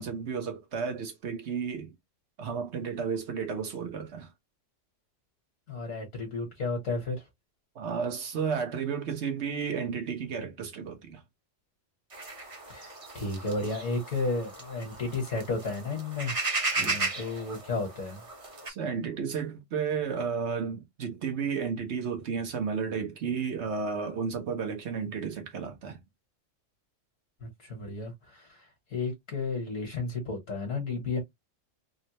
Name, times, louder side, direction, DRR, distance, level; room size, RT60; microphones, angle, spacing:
voice 1, 0.0-1.9 2.4-4.3 7.7-11.2 16.7-17.0 18.7-26.0, right 6 dB, 60° right, 1.2 m, -32 dB
voice 2, 5.7-7.2 12.7-16.4 16.8-18.2 27.4-31.2, left 3 dB, 80° left, 1.6 m, -33 dB
sound 1, 12.1-18.7, right 3 dB, 30° right, 0.8 m, -35 dB
3.6 x 2.1 x 2.9 m
omnidirectional pair, 1.3 m